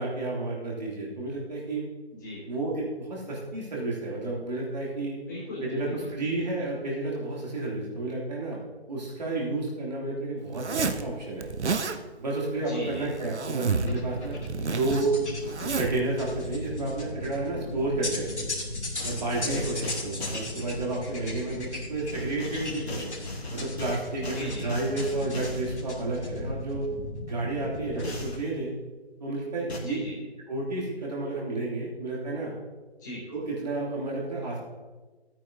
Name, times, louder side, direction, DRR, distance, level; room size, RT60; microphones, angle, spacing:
voice 1, 0.0-1.8 2.5-5.2 5.6-8.6 8.9-11.5 12.2-15.1 15.6-18.5 19.0-19.7 20.0-23.1 23.5-26.9 27.3-28.7 29.2-30.0 30.5-32.5 33.3-34.7, right 2 dB, 40° right, -4 dB, 2.9 m, -31 dB
voice 2, 2.1-2.4 5.3-6.7 12.6-13.2 19.4-19.9 24.3-24.8 29.8-30.3 33.0-33.2, left 1 dB, 15° left, -8 dB, 2.7 m, -39 dB
Zipper (clothing), 10.5-11.0 11.4-12.0 12.8-14.0 14.2-16.0, right 4 dB, 90° right, 0.9 m, -30 dB
sound 1, 13.7-28.4, left 2 dB, 90° left, 3.1 m, -36 dB
sound 2, 19.0-20.5 22.1-25.7 28.0-28.4 29.7-29.8, left 1 dB, 70° left, 2.3 m, -39 dB
13.5 x 9.0 x 2.8 m, 1.3 s
figure-of-eight pair, 170°, 33 cm